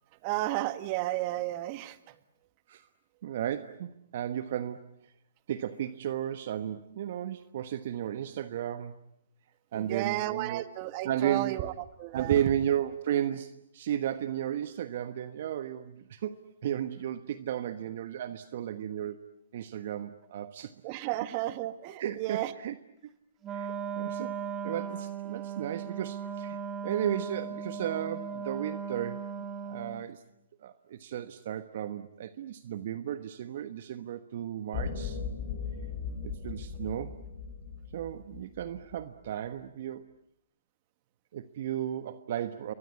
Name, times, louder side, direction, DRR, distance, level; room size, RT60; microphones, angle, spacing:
voice 1, 0.2-2.0 9.7-11.7 12.0-12.4 20.8-22.5, right 16 dB, 35° right, 11 dB, 1.7 m, -32 dB
voice 2, 3.2-4.8 5.5-9.0 9.7-10.6 11.0-11.5 12.1-19.2 19.5-20.7 22.0-22.7 23.5-24.3 24.6-26.6 26.8-29.2 29.6-30.2 30.6-35.2 36.2-37.2 37.9-40.0 41.3-42.7, right 10 dB, 55° right, 10 dB, 1.3 m, -34 dB
Wind instrument woodwind instrument, 23.4-30.1, right 7 dB, 20° right, 1.9 m, -37 dB
sound 1, 34.7-39.0, left 6 dB, 30° left, 5.1 m, -38 dB
29.5 x 23.0 x 8.5 m, 0.77 s
hypercardioid pair, 130°, 0 cm